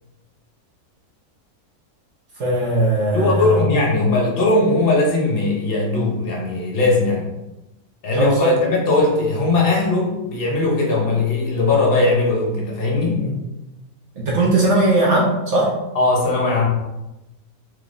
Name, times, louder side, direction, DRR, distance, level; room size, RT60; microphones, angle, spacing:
voice 1, 2.4-3.6 8.1-8.5 13.1-13.3 14.2-15.7, right 2 dB, 55° right, -4 dB, 1.0 m, -19 dB
voice 2, 3.1-7.3 8.0-13.2 15.9-16.7, left 2 dB, 50° left, -2 dB, 0.8 m, -19 dB
3.6 x 3.1 x 2.5 m, 0.99 s
omnidirectional pair, 1.7 m